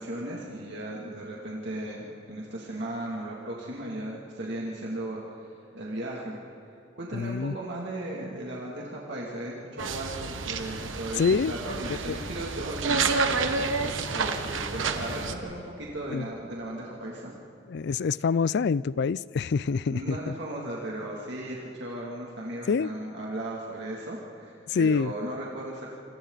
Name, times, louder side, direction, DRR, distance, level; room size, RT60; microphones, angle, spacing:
voice 1, 0.0-6.4 7.0-17.3 19.9-26.0, right 1 dB, 65° right, -4 dB, 2.6 m, -36 dB
voice 2, 7.1-7.6 11.2-11.5 12.1-12.2 16.1-16.2 17.7-20.2 22.7-22.9 24.7-25.1, left 5 dB, 60° left, 20 dB, 0.4 m, -26 dB
sound 1, 9.8-15.3, right 4 dB, 85° right, 1.4 m, -29 dB
27.0 x 26.5 x 4.1 m, 2.8 s
head